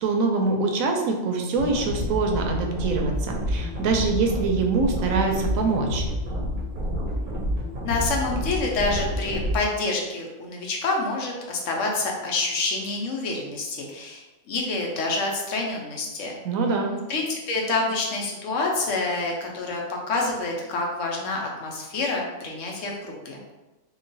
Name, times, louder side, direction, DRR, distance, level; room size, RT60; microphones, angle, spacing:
voice 1, 0.0-6.0 16.4-16.9, right 4 dB, 85° right, 3 dB, 1.0 m, -24 dB
sound 1, 1.6-9.6, equal, 45° right, 0.7 m, -29 dB
voice 2, 7.8-16.3 17.1-23.4, left 3 dB, 70° left, 0 dB, 1.0 m, -27 dB
3.0 x 2.3 x 3.8 m, 1.1 s
omnidirectional pair, 1.4 m